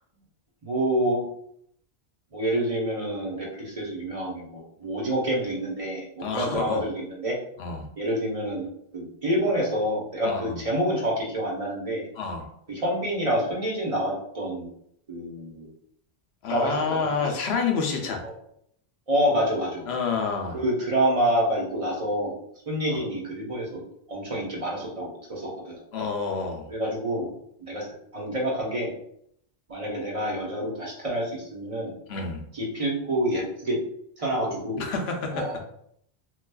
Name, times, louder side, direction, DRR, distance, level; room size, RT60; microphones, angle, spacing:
voice 1, 0.6-1.2 2.3-7.4 8.0-8.7 8.9-12.1 12.7-14.7 15.1-15.7 16.5-17.1 18.2-18.3 19.1-19.9 20.5-22.3 22.7-23.8 24.1-25.8 26.7-27.3 27.7-27.9 28.1-28.9 29.7-31.9 32.5-33.8 34.2-34.9 35.3-35.7, equal, 35° right, -2 dB, 0.9 m, -27 dB
voice 2, 6.2-6.8 7.6-7.9 10.2-10.6 12.2-12.4 16.4-18.2 19.9-20.6 22.9-23.0 25.9-26.7 32.1-32.4 34.8-35.5, left 5 dB, 75° left, 3 dB, 0.9 m, -28 dB
4.4 x 2.3 x 2.2 m, 0.71 s
omnidirectional pair, 1.1 m